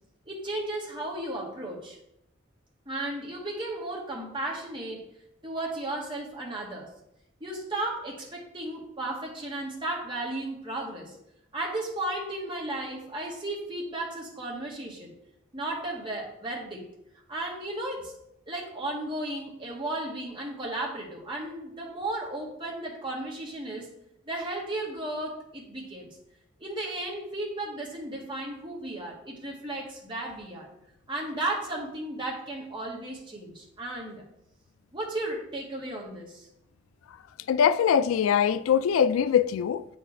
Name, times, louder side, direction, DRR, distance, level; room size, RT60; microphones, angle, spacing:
voice 1, 0.3-2.0 2.9-5.0 5.4-6.9 7.4-11.2 11.5-15.1 15.5-16.9 17.3-18.1 18.5-23.9 24.3-26.1 26.6-30.7 31.1-34.2 34.9-36.5, right 1 dB, 25° right, 1.7 m, -34 dB
voice 2, 37.5-39.8, left 8 dB, 85° left, 0.3 m, -22 dB
8.1 x 4.7 x 4.3 m
head